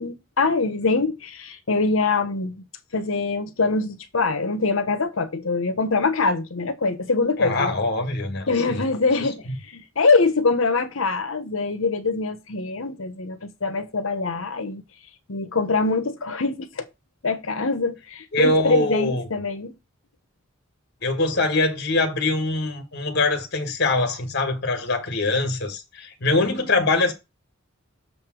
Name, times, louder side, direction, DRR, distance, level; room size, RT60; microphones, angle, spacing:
voice 1, 0.0-2.6 2.9-7.7 8.5-14.8 15.3-16.9 17.2-19.7, left 3 dB, 80° left, 1.1 m, -24 dB
voice 2, 7.4-8.9 9.5-9.6 18.3-19.2 21.0-27.1, left 2 dB, 55° left, 1.5 m, -23 dB
6.9 x 3.3 x 6.2 m
head